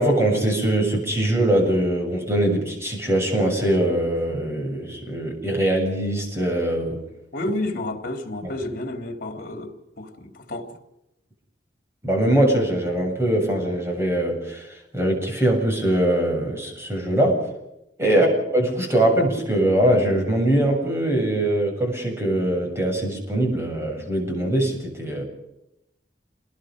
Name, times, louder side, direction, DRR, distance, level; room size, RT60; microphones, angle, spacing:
voice 1, 0.0-7.0 8.4-8.5 12.0-17.5 18.0-25.2, right 1 dB, 15° right, 7.4 m, -22 dB
voice 2, 7.3-10.7 18.0-18.3, left 1 dB, 55° left, 3.4 m, -31 dB
28.5 x 20.5 x 5.3 m
head